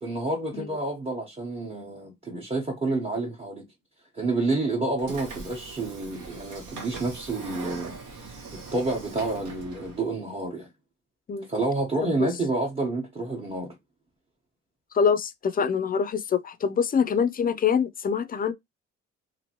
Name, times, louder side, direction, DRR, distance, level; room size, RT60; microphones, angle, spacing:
voice 1, 0.0-3.7 4.1-10.7 11.5-13.7, right 2 dB, 20° right, 1.0 m, -29 dB
Train / Sliding door, 5.0-10.0, right 5 dB, 80° right, 1.0 m, -41 dB
voice 2, 14.9-18.5, left 6 dB, 30° left, 0.4 m, -25 dB
2.8 x 2.6 x 2.8 m
cardioid pair, 90°, 30 cm